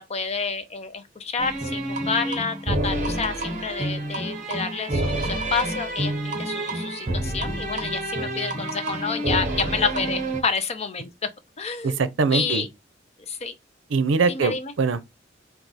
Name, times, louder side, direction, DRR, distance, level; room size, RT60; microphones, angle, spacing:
voice 1, 0.0-11.3 11.6-12.0 12.3-12.7 13.3-13.6 14.3-14.7, left 5 dB, 35° left, 0.6 m, -29 dB
sound 1, 1.4-10.4, right 1 dB, 40° right, 1.1 m, -28 dB
voice 2, 11.8-12.6 13.9-15.0, right 4 dB, 90° right, 0.5 m, -22 dB
4.7 x 2.4 x 4.0 m
head